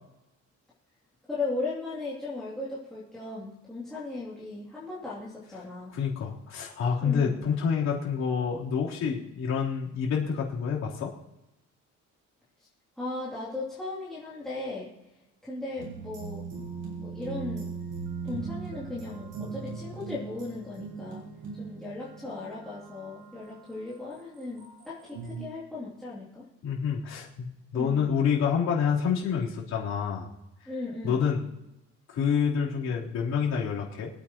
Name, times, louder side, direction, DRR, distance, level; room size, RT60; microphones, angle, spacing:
voice 1, 1.3-5.9 7.0-7.4 13.0-14.9 15.4-16.4 17.0-17.7 18.2-21.2 21.5-26.5 27.7-28.0 30.7-31.3, left 3 dB, ahead, -10 dB, 2.9 m, -37 dB
voice 2, 5.9-11.1 26.6-30.3 31.0-31.4 32.1-34.1, left 6 dB, 60° left, -5 dB, 3.7 m, -28 dB
sound 1, 15.8-23.5 24.2-25.3, right 5 dB, 80° right, 5.6 m, -39 dB
25.0 x 8.9 x 3.0 m, 0.93 s
cardioid pair, 175°, 30 cm